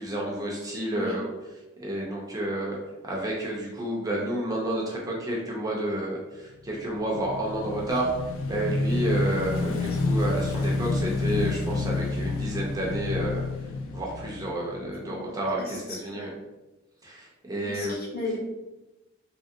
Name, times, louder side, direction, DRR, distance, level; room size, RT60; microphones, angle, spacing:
voice 1, 0.0-1.3 1.8-2.8 3.0-8.1 8.4-13.5 13.9-16.3 17.0-18.0, right 1 dB, 20° right, -3 dB, 0.5 m, -30 dB
Motorcycle / Engine, 6.7-15.2, left 3 dB, 70° left, 0.3 m, -29 dB
voice 2, 9.6-10.0 15.0-15.3 15.6-15.7 16.0-16.4 17.6-18.4, left 2 dB, 50° left, -5 dB, 1.0 m, -35 dB
2.9 x 2.7 x 2.4 m, 1.0 s
head